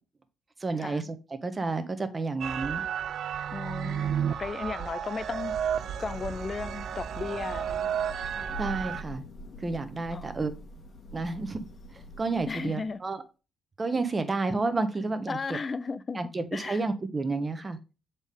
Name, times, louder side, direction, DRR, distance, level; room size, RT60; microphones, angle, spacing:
voice 1, 0.6-2.8 8.6-9.2 9.6-10.5 11.1-11.6 12.2-13.2 13.8-15.6 16.1-17.8, right 3 dB, 25° right, 0.9 m, -30 dB
sound 1, 2.4-9.0, right 8 dB, 65° right, 0.3 m, -32 dB
voice 2, 3.5-5.7 6.0-7.9 10.1-10.3 12.5-13.0 15.3-16.8, left 4 dB, 35° left, 0.5 m, -35 dB
Thunder / Rain, 4.9-12.9, right 1 dB, 55° left, 1.6 m, -45 dB
7.0 x 4.1 x 3.6 m
cardioid pair, 90°, 0 cm